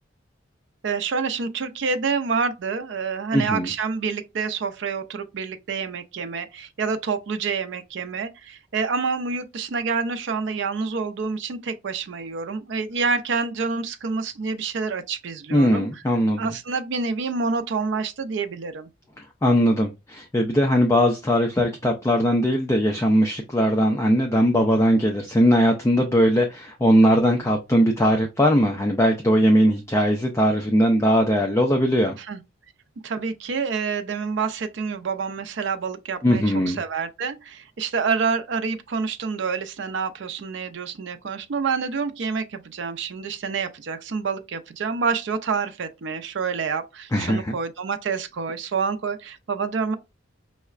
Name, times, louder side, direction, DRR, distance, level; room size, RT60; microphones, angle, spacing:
voice 1, 0.8-15.9 16.4-18.9 32.2-32.4 33.0-50.0, right 5 dB, 60° right, 0.4 m, -27 dB
voice 2, 3.3-3.7 15.5-16.5 19.4-32.2 36.2-36.8 47.1-47.6, equal, 15° left, 0.3 m, -20 dB
5.5 x 2.1 x 2.4 m
head